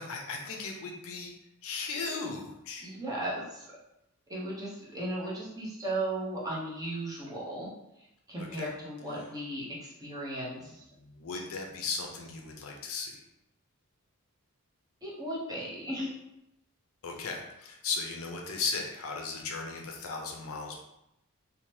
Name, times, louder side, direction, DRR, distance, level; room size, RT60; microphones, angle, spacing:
voice 1, 0.0-1.3 1.6-2.9 8.4-8.7 11.0-13.2 17.0-20.8, left 4 dB, 65° left, 1 dB, 0.4 m, -36 dB
voice 2, 2.8-3.7 4.3-7.7 8.3-10.8 15.0-16.1, right 1 dB, 15° right, -7 dB, 0.7 m, -36 dB
2.7 x 2.0 x 3.1 m, 0.86 s
head